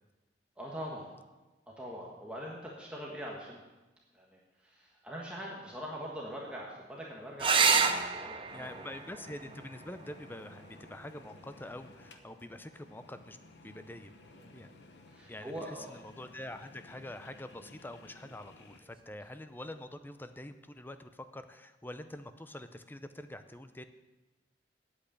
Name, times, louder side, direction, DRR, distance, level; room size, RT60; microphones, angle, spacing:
voice 1, 0.6-1.1 1.8-3.6 4.1-8.8 9.1-9.2 15.1-15.9, equal, 5° right, -4 dB, 1.4 m, -43 dB
sound 1, 7.4-12.4 14.3-14.9 18.4-18.5 18.8-18.9, right 5 dB, 30° right, 0.6 m, -32 dB
sound 2, 8.5-18.8, left 2 dB, 75° left, 1.1 m, -56 dB
voice 2, 8.5-13.4 13.6-14.2 14.5-14.7 15.3-23.8, left 1 dB, 10° left, 10 dB, 0.6 m, -45 dB
8.4 x 8.3 x 8.5 m, 1.1 s
head